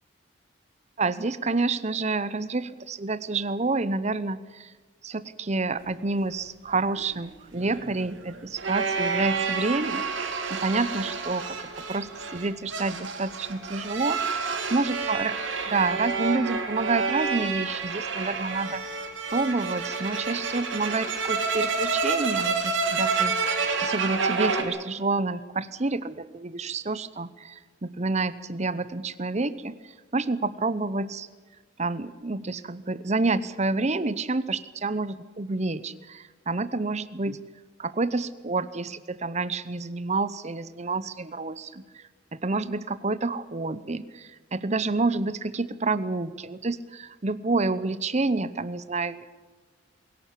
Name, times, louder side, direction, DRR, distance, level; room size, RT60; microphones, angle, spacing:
voice 1, 1.0-4.7 5.0-10.1 10.5-15.4 15.7-18.9 19.3-23.4 23.6-29.7 30.1-31.3 31.8-37.4 37.8-42.0 42.3-49.2, right 3 dB, 35° right, 16 dB, 0.8 m, -28 dB
sound 1, 6.9-24.6, right 4 dB, 70° right, 2.4 m, -29 dB
21.5 x 17.5 x 8.5 m, 1.4 s
head